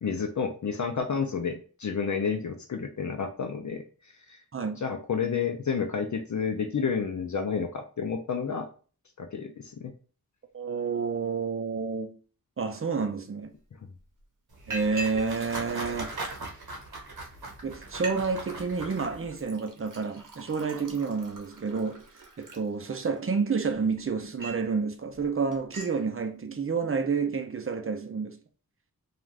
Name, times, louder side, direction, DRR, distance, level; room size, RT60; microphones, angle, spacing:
voice 1, 0.0-4.4 4.8-8.7 9.2-9.9, left 6 dB, 55° left, 0.5 m, -30 dB
voice 2, 10.5-12.2 12.6-13.5 14.7-16.2 17.6-22.0 22.4-28.4, right 5 dB, 35° right, 0.5 m, -29 dB
Liquid, 13.5-13.6 14.0-14.2 14.7-15.3 15.6-16.5 17.2-17.3 17.6-17.7 17.9-18.2 18.5-18.9 19.4-23.2 23.7-24.7 25.1-25.3 25.5-26.0, right 2 dB, 60° right, 0.9 m, -42 dB
sound 1, 14.5-19.4, right 2 dB, 85° right, 0.9 m, -40 dB
2.4 x 2.4 x 3.2 m
wide cardioid pair, 55°, 36 cm